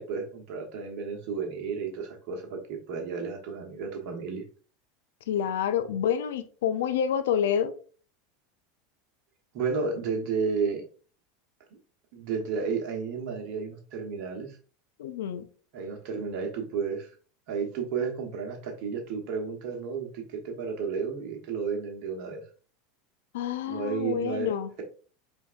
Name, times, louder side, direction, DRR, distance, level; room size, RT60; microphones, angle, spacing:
voice 1, 0.0-4.4 9.5-10.8 12.1-14.6 15.7-17.1 17.5-22.4 23.7-24.5, right 5 dB, 55° right, 1.0 m, -32 dB
voice 2, 5.3-7.7 15.0-15.5 23.3-24.7, left 8 dB, 70° left, 0.4 m, -28 dB
4.5 x 3.4 x 2.4 m
figure-of-eight pair, 80°, 0 cm